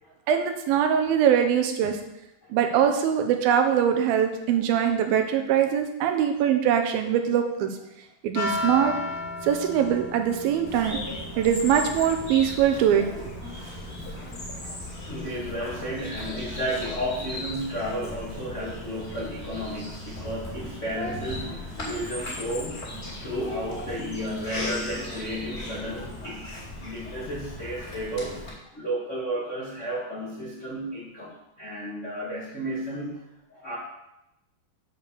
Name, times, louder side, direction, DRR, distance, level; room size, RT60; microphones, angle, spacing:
voice 1, 0.3-2.0 2.5-7.7 8.2-8.9 9.4-11.0 11.4-13.1, right 9 dB, 80° right, 6 dB, 2.6 m, -22 dB
sound 1, 8.3-24.3, left 1 dB, 45° left, 2.0 m, -39 dB
Bird vocalization bird call bird song, 10.7-28.5, left 1 dB, 20° left, 2.2 m, -37 dB
voice 2, 13.4-13.9 14.2-14.8 15.1-22.8 23.2-28.4 28.7-33.2 33.5-33.8, equal, 70° left, -7 dB, 0.7 m, -33 dB
7.1 x 5.0 x 6.8 m, 0.87 s
omnidirectional pair, 4.3 m